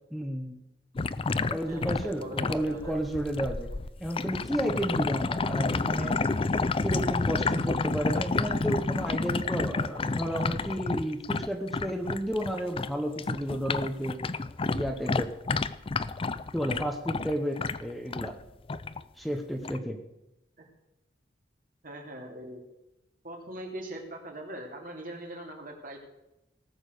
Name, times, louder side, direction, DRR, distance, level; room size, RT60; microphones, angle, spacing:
voice 1, 0.1-0.6 1.5-3.7 4.0-6.2 6.8-14.2 14.7-15.3 16.5-18.4 19.2-20.0, equal, ahead, 4 dB, 1.0 m, -32 dB
sound 1, 1.0-12.9 13.2-18.3 18.7-19.0 19.6-19.8, left 3 dB, 30° left, 0.4 m, -30 dB
voice 2, 1.7-2.9 20.6-20.7 21.8-22.6 23.2-26.0, right 1 dB, 50° right, 1 dB, 3.1 m, -41 dB
18.5 x 7.2 x 6.7 m, 0.92 s
head